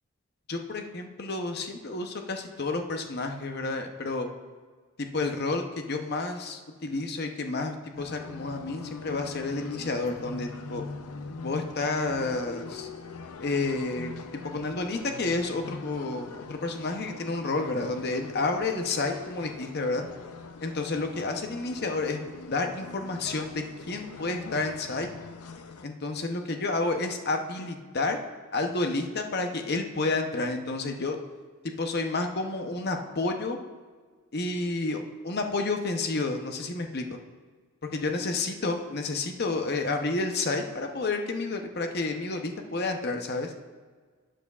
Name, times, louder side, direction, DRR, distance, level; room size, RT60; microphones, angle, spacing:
voice 1, 0.5-4.3 5.0-10.8 11.4-12.9 13.4-14.2 14.4-20.0 20.6-22.2 22.5-25.1 25.8-28.2 28.5-31.2 31.8-33.6 34.3-37.2 37.9-43.5, left 3 dB, 45° left, 4 dB, 0.8 m, -30 dB
sound 1, 8.0-25.8, left 4 dB, 85° left, 0.6 m, -42 dB
12.5 x 8.7 x 2.4 m, 1.5 s
head